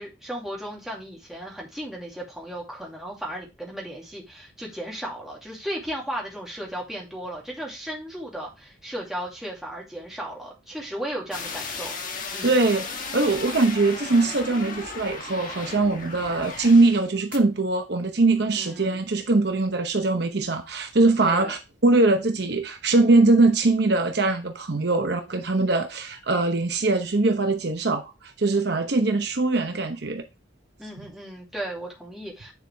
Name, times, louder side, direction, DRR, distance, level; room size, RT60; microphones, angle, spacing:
voice 1, 0.0-12.0 12.3-12.5 18.6-19.0 21.2-21.5 30.8-32.5, right 1 dB, ahead, 2.4 m, -35 dB
sound 1, 11.3-17.0 17.3-17.4, left 4 dB, 45° left, 1.5 m, -35 dB
voice 2, 12.4-28.1 28.4-30.2, right 3 dB, 60° right, 0.9 m, -22 dB
9.7 x 4.8 x 3.4 m
head